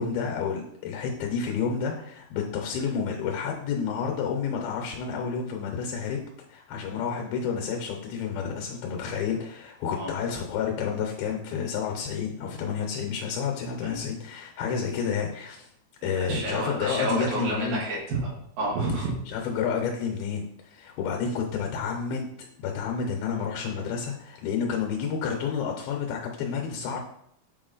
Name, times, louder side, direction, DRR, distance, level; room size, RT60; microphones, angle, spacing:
voice 1, 0.0-6.2 6.5-15.7 16.0-17.8 19.3-22.3 22.6-27.0, left 6 dB, 85° left, 1 dB, 2.8 m, -30 dB
voice 2, 16.0-18.3 18.6-19.1, right 2 dB, 75° right, -6 dB, 4.3 m, -29 dB
8.2 x 4.7 x 3.9 m, 0.71 s
omnidirectional pair, 4.2 m